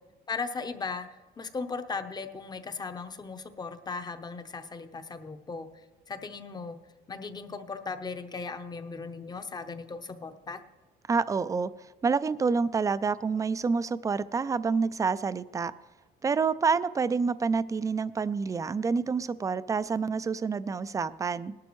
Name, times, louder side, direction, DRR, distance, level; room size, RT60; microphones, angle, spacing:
voice 1, 0.3-6.8 7.1-10.6, left 4 dB, 25° left, 9 dB, 0.8 m, -37 dB
voice 2, 11.1-11.7 12.0-15.7 16.2-21.5, right 5 dB, 20° right, 15 dB, 0.3 m, -28 dB
18.5 x 11.5 x 3.1 m, 1.3 s
cardioid pair, 110°, 17 cm